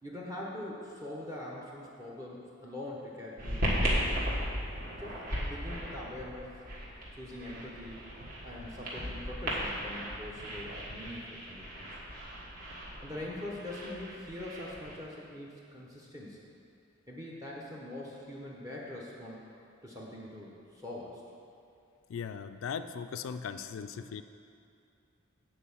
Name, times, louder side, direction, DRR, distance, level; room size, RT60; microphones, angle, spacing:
voice 1, 0.0-4.2 5.0-6.6 7.1-8.0 8.4-12.0 13.0-16.4 17.1-19.4 19.8-21.2, left 1 dB, 15° right, -4 dB, 0.9 m, -43 dB
sound 1, 3.4-14.9, equal, 45° right, 1.5 m, -36 dB
voice 2, 22.1-24.2, left 6 dB, 75° left, 9 dB, 0.3 m, -38 dB
8.5 x 4.4 x 7.0 m, 2.5 s
head